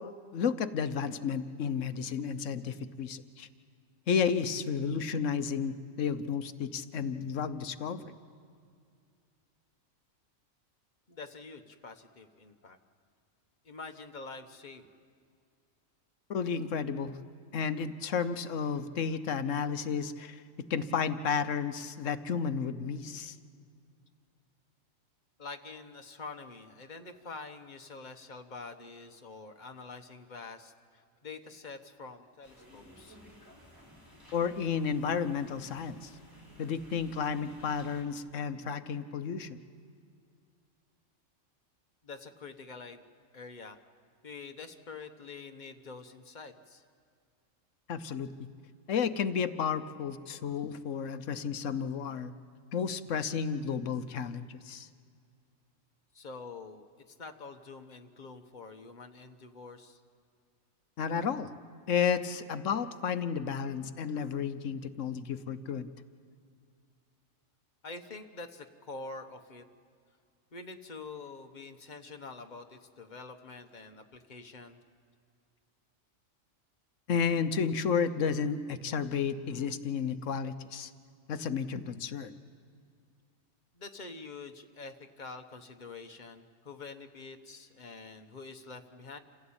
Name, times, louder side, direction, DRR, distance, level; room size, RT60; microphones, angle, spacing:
voice 1, 0.0-3.5 4.1-8.1 16.3-17.2 17.5-20.4 20.7-23.3 34.3-36.1 36.6-39.6 47.9-48.3 48.9-52.3 52.7-54.9 61.0-61.5 61.9-65.9 77.1-80.9 81.3-82.4, left 6 dB, 70° left, 11 dB, 1.2 m, -32 dB
voice 2, 11.1-12.8 13.6-14.9 25.4-33.2 42.0-43.0 43.3-43.8 44.2-46.8 56.1-60.0 67.8-69.6 70.5-74.8 83.7-89.2, left 4 dB, 35° left, 6 dB, 1.3 m, -46 dB
sound 1, 32.4-38.0, equal, 15° right, 4.8 m, -55 dB
28.0 x 16.0 x 8.8 m, 2.3 s
omnidirectional pair, 1.4 m